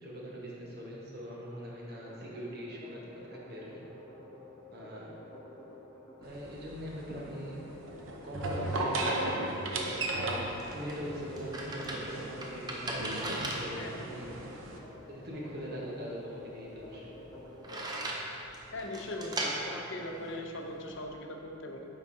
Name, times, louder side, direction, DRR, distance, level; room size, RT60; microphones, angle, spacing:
voice 1, 0.0-3.8 4.7-5.1 6.2-7.9 8.2-10.3 10.7-14.5 15.1-17.0 17.7-18.2, equal, 50° right, -4 dB, 1.1 m, -42 dB
sound 1, 1.8-17.8, left 1 dB, 15° left, 1.0 m, -51 dB
sound 2, 6.2-14.8, right 2 dB, 70° right, 0.6 m, -36 dB
sound 3, 10.1-21.0, right 1 dB, 20° right, 0.5 m, -40 dB
voice 2, 13.8-14.1 17.4-17.5 18.7-21.9, left 1 dB, 60° left, 2 dB, 0.6 m, -40 dB
8.8 x 4.8 x 2.7 m, 3.0 s
head